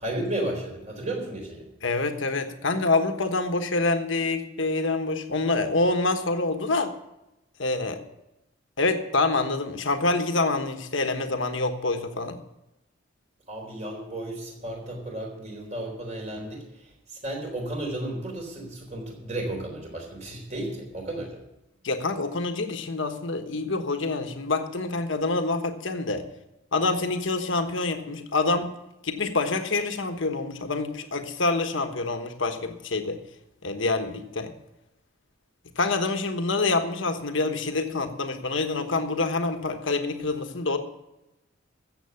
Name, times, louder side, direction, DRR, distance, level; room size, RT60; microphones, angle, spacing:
voice 1, 0.0-1.7 13.5-21.4, right 1 dB, 35° right, 1 dB, 3.9 m, -33 dB
voice 2, 1.8-6.9 7.6-8.0 8.8-12.4 21.8-26.2 26.7-28.7 29.0-33.2 33.6-34.5 35.8-40.8, left 3 dB, 65° left, 7 dB, 1.3 m, -26 dB
14.5 x 7.9 x 6.9 m, 0.92 s
head